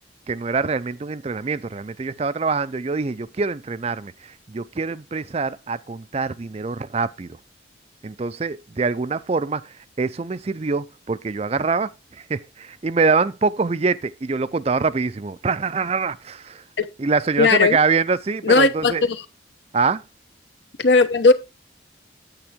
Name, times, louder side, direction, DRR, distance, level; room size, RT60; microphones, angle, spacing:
voice 1, 0.3-7.4 8.0-16.6 17.0-19.0 19.7-20.0, right 4 dB, 35° right, 0.4 m, -24 dB
voice 2, 17.4-17.8 18.4-19.2 20.8-21.3, left 3 dB, 70° left, 1.0 m, -16 dB
8.9 x 8.8 x 3.6 m
head